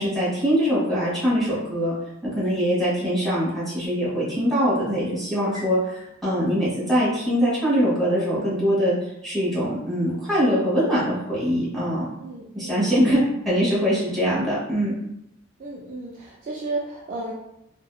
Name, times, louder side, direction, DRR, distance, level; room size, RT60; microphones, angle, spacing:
voice 1, 0.0-1.9 2.2-8.9 9.2-12.1 12.5-14.9, equal, ahead, -10 dB, 1.3 m, -23 dB
voice 2, 12.2-13.2 15.6-17.3, right 2 dB, 40° right, -3 dB, 0.3 m, -34 dB
2.7 x 2.0 x 2.3 m, 0.81 s
head